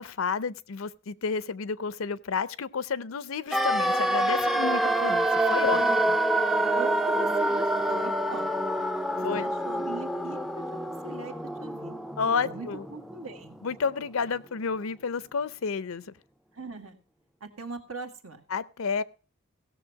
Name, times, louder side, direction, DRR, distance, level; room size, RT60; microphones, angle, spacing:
voice 1, 0.0-5.8 6.1-6.2 9.2-9.4 12.2-12.8 13.6-16.0 18.5-19.0, left 5 dB, 70° left, 0.6 m, -30 dB
sound 1, 3.5-13.4 13.7-13.8, right 1 dB, ahead, 0.5 m, -27 dB
voice 2, 5.6-6.0 6.7-8.5 9.2-12.0 12.4-13.6 16.5-17.0 17.4-18.4, right 3 dB, 80° right, 1.8 m, -41 dB
17.0 x 6.8 x 4.7 m
head